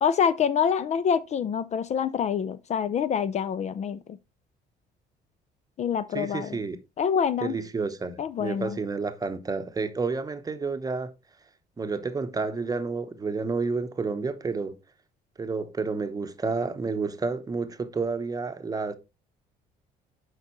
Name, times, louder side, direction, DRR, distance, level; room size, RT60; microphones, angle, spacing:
voice 1, 0.0-4.2 5.8-6.6 7.0-7.5 8.2-8.8, left 7 dB, 40° left, 0.5 m, -26 dB
voice 2, 6.1-6.8 7.4-11.1 11.8-14.8 15.4-18.9, right 4 dB, 20° right, 0.8 m, -30 dB
8.1 x 5.2 x 3.0 m
cardioid pair, 110°, 17 cm